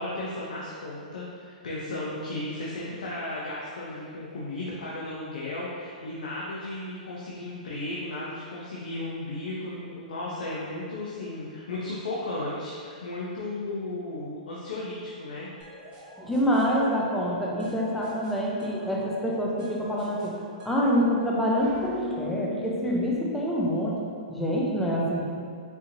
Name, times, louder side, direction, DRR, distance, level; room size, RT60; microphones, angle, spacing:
voice 1, 0.0-15.5, left 2 dB, 85° left, -6 dB, 0.6 m, -35 dB
sound 1, 15.6-23.4, left 3 dB, 30° right, 1.1 m, -43 dB
voice 2, 16.2-20.3 20.6-24.0 24.3-25.3, equal, 5° left, -5 dB, 0.5 m, -26 dB
4.4 x 2.6 x 2.7 m, 2.2 s
hypercardioid pair, 155°, 4 cm